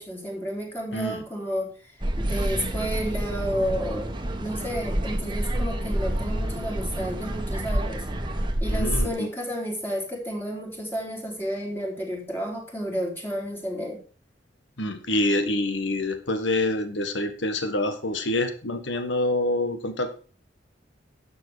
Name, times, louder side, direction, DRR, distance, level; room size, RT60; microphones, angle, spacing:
voice 1, 0.0-1.7 2.2-8.0 8.6-14.0, equal, 10° left, -2 dB, 4.0 m, -31 dB
voice 2, 0.9-1.2 8.7-9.3 14.8-20.1, left 1 dB, 75° left, 8 dB, 1.6 m, -26 dB
sound 1, 2.0-9.1, right 1 dB, 25° right, 1.4 m, -28 dB
12.0 x 7.1 x 5.0 m, 0.38 s
head